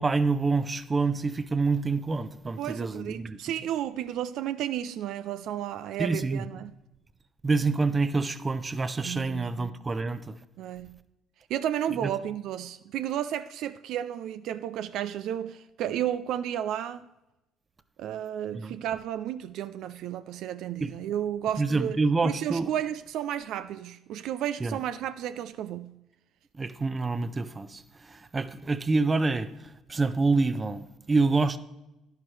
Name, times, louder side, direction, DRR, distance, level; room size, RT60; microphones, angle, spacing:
voice 1, 0.0-3.4 6.0-6.4 7.4-10.4 12.0-12.1 18.5-18.8 20.8-20.9 21.6-22.7 24.6-24.8 26.5-31.6, right 3 dB, 30° right, 0.7 m, -27 dB
voice 2, 2.6-6.7 9.0-9.8 10.6-11.0 11.5-17.1 18.0-26.0, right 11 dB, 70° right, 0.3 m, -33 dB
11.0 x 10.5 x 3.2 m
supercardioid pair, 70°, 0 cm